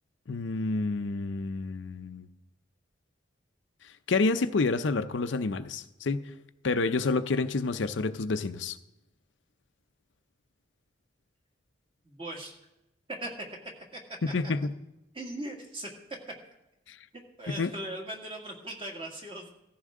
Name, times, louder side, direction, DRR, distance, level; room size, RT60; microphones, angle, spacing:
voice 1, 0.3-2.3 4.1-6.3 6.6-8.8 14.2-14.7 16.9-17.0 17.5-17.7, left 3 dB, 80° left, 0.6 m, -29 dB
voice 2, 12.0-12.6 13.2-13.5 13.9-14.0 15.1-15.9 17.1-19.5, right 1 dB, 30° right, 2.1 m, -39 dB
17.0 x 14.5 x 3.7 m
head